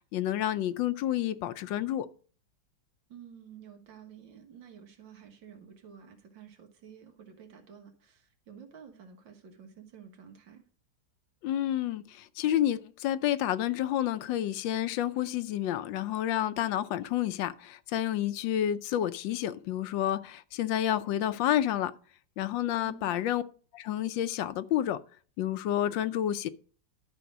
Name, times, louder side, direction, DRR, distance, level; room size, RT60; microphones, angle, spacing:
voice 1, 0.1-2.1 11.4-21.9 22.4-23.4 23.7-25.0 25.4-26.5, left 11 dB, 80° left, 1.3 m, -29 dB
voice 2, 3.1-10.6 22.8-23.4, right 7 dB, 75° right, 2.2 m, -51 dB
12.0 x 4.6 x 6.1 m
omnidirectional pair, 2.1 m